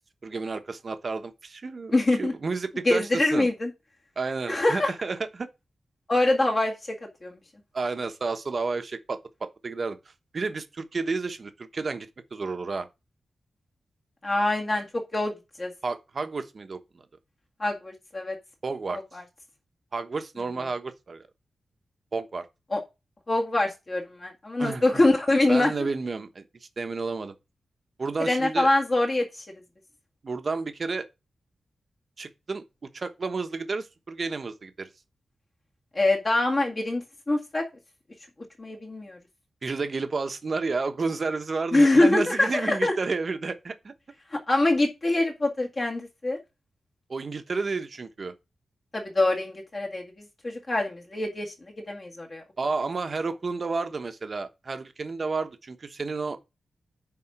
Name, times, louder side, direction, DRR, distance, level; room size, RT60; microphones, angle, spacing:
voice 1, 0.2-1.9 2.2-3.5 4.2-5.5 7.7-10.0 10.3-12.9 15.8-17.0 18.6-19.0 19.9-21.2 22.1-22.4 24.6-25.0 25.5-26.4 26.8-27.3 28.0-28.7 30.2-31.1 32.2-32.6 32.9-34.9 39.6-43.9 47.1-48.3 52.6-56.4, right 4 dB, 40° right, 1.1 m, -31 dB
voice 2, 1.9-2.3 2.8-3.7 4.5-4.9 6.1-7.0 7.2-7.4 14.2-15.3 15.6-15.7 17.6-18.4 19.1-19.2 22.7-22.8 23.3-25.9 28.3-29.4 35.9-37.6 38.6-39.2 41.7-42.9 44.3-46.4 48.9-50.0 50.4-52.4, left 2 dB, 30° left, 1.9 m, -24 dB
9.8 x 4.2 x 5.9 m
wide cardioid pair, 150°, 0 cm